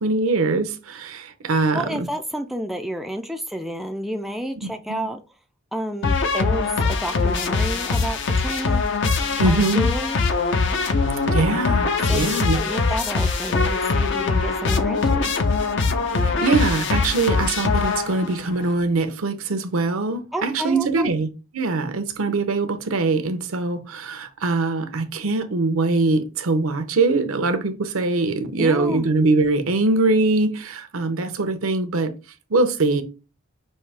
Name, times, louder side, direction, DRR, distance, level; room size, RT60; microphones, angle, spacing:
voice 1, 0.0-2.1 4.9-5.1 9.4-9.9 11.2-12.6 16.1-32.1 32.5-33.0, right 3 dB, 75° right, 0.7 m, -22 dB
voice 2, 1.7-5.2 5.7-8.8 9.4-10.2 12.1-15.4 20.3-21.1 28.6-29.1, equal, ahead, 0.3 m, -30 dB
sound 1, 6.0-18.4, left 4 dB, 60° left, 0.7 m, -22 dB
Wind instrument woodwind instrument, 10.7-16.5, left 2 dB, 80° left, 2.8 m, -35 dB
5.4 x 2.7 x 3.4 m
head